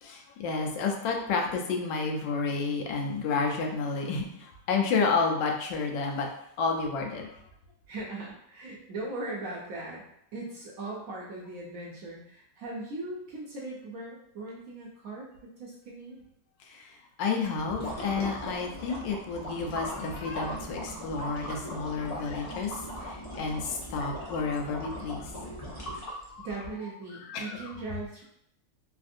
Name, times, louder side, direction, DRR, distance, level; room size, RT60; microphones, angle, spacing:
voice 1, 0.0-6.3 6.6-7.4 16.7-25.3 26.3-26.5 27.2-27.7, left 4 dB, 85° left, 2 dB, 1.3 m, -31 dB
voice 2, 7.9-10.0 10.3-15.3 15.6-16.2 26.4-28.2, right 2 dB, 65° right, -4 dB, 0.9 m, -39 dB
sound 1, 17.6-26.5, equal, 65° left, 0.3 m, -39 dB
3.4 x 2.4 x 2.5 m, 0.74 s
omnidirectional pair, 1.9 m